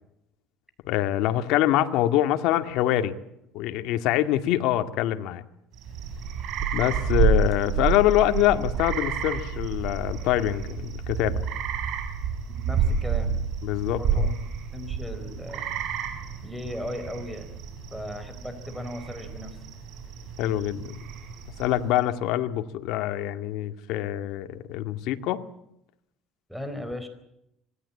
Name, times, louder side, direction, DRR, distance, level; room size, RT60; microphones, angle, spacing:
voice 1, 0.9-3.1 3.5-5.4 6.7-11.4 13.6-14.3 20.4-20.9 21.6-25.4, left 13 dB, 75° left, 8 dB, 2.2 m, -25 dB
sound 1, 5.7-22.0, right 6 dB, 60° right, 7.5 m, -29 dB
voice 2, 12.5-13.3 14.0-14.3 14.7-15.7 16.4-17.5 17.9-19.5 26.5-27.1, left 1 dB, ahead, 7 dB, 4.3 m, -36 dB
26.0 x 20.0 x 8.6 m, 0.80 s
cardioid pair, 120°, 0 cm